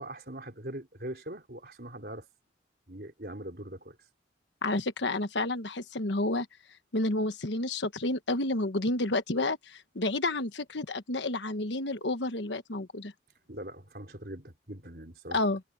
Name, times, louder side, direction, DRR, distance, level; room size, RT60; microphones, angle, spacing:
voice 1, 0.0-2.3 2.9-4.0 13.5-15.5, right 1 dB, 55° right, 4.0 m, -42 dB
voice 2, 4.6-6.5 6.9-13.1 15.3-15.6, left 2 dB, 80° left, 1.3 m, -30 dB
head